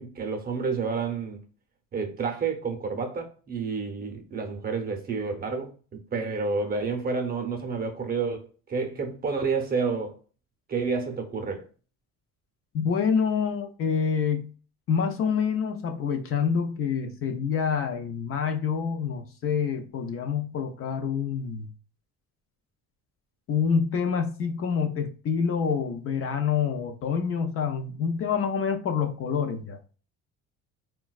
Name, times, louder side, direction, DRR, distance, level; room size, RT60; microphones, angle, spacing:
voice 1, 0.0-1.4 1.9-10.1 10.7-11.7, right 4 dB, 30° right, 0.7 m, -30 dB
voice 2, 12.7-14.5 14.9-21.7 23.5-29.8, left 6 dB, 45° left, 0.5 m, -27 dB
3.8 x 2.2 x 2.3 m
cardioid pair, 115°, 32 cm